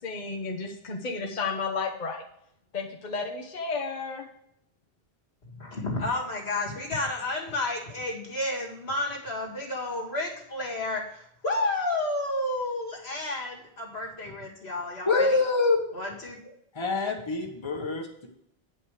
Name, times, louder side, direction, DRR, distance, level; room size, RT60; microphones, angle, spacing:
voice 1, 0.0-2.2 2.7-4.3, left 4 dB, 50° left, 0 dB, 1.1 m, -32 dB
voice 2, 5.6-15.4 15.9-16.3, left 2 dB, 90° left, -1 dB, 2.6 m, -31 dB
voice 3, 15.1-15.8 16.8-18.3, left 3 dB, 30° left, 2 dB, 1.3 m, -25 dB
9.4 x 5.6 x 5.0 m, 0.72 s
omnidirectional pair, 1.0 m